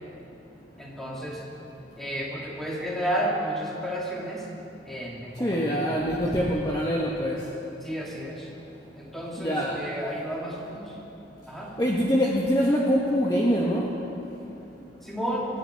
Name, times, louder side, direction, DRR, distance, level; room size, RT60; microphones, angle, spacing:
voice 1, 0.8-1.4 2.0-4.4 4.9-5.8 7.8-8.5 9.0-10.9 11.5-11.7 15.0-15.5, equal, ahead, -5 dB, 2.6 m, -32 dB
voice 2, 5.4-7.4 9.4-9.8 11.8-13.9, equal, 20° left, -4 dB, 1.1 m, -24 dB
25.0 x 9.0 x 4.6 m, 2.9 s
head